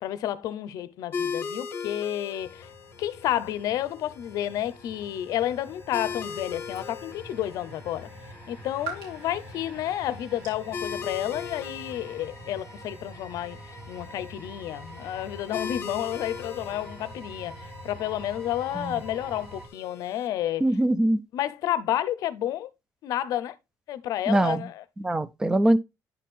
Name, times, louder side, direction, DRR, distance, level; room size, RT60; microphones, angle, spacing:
voice 1, 0.0-2.7 3.0-8.1 8.5-13.6 13.9-20.6 21.3-22.7 23.0-23.5 23.9-24.8, left 12 dB, 65° left, 0.6 m, -30 dB
sound 1, 1.1-20.3, left 6 dB, 35° left, 1.0 m, -40 dB
sound 2, 2.4-19.7, right 1 dB, 30° right, 1.5 m, -45 dB
sound 3, 5.2-11.5, right 6 dB, 80° right, 4.3 m, -47 dB
voice 2, 20.6-21.2 24.3-24.7 25.0-25.8, right 1 dB, 10° right, 0.3 m, -23 dB
9.8 x 4.2 x 3.5 m
cardioid pair, 170°, 7 cm